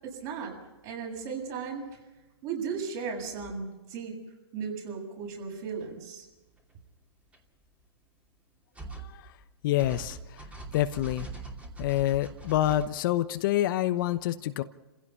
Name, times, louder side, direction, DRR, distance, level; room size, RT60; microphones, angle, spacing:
voice 1, 0.0-0.6 0.8-1.8 2.4-4.2 4.5-6.3, right 5 dB, 40° right, 0 dB, 7.7 m, -36 dB
sound 1, 5.7-5.8 7.3-7.4 8.8-9.5 9.8-12.8, right 3 dB, 10° right, 2.6 m, -42 dB
voice 2, 9.0-9.3 9.6-10.5 10.7-11.3 11.8-14.6, left 13 dB, 45° left, 11 dB, 0.9 m, -27 dB
29.0 x 16.0 x 5.8 m, 1.1 s
hypercardioid pair, 135°, 15 cm